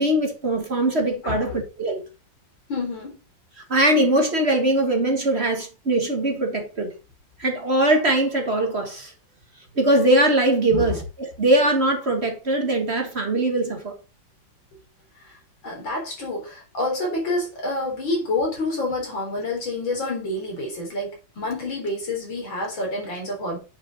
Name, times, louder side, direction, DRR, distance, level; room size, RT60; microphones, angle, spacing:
voice 1, 0.0-2.0 3.7-6.9 7.4-9.1 9.8-13.9, right 1 dB, 35° right, 1.8 m, -21 dB
voice 2, 1.2-1.5 2.7-3.1 10.7-11.0 15.2-15.4 15.6-23.6, left 2 dB, 85° left, 4.6 m, -28 dB
8.9 x 6.1 x 4.0 m
omnidirectional pair, 2.1 m